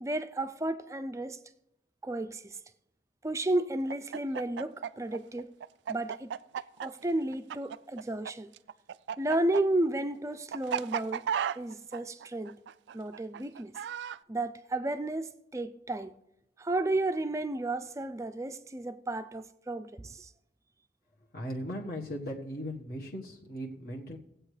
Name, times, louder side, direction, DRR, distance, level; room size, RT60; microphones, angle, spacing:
voice 1, 0.0-1.4 2.0-2.6 3.2-5.5 5.9-6.3 6.8-8.5 9.2-11.3 11.6-12.6 12.9-13.7 14.3-16.2 16.6-20.3, right 2 dB, 15° right, 0.4 m, -32 dB
Chicken rooster, 3.9-8.3 8.6-14.2, right 8 dB, 85° right, 0.3 m, -34 dB
voice 2, 21.3-24.2, equal, 55° left, 1.4 m, -38 dB
19.5 x 8.0 x 3.2 m
head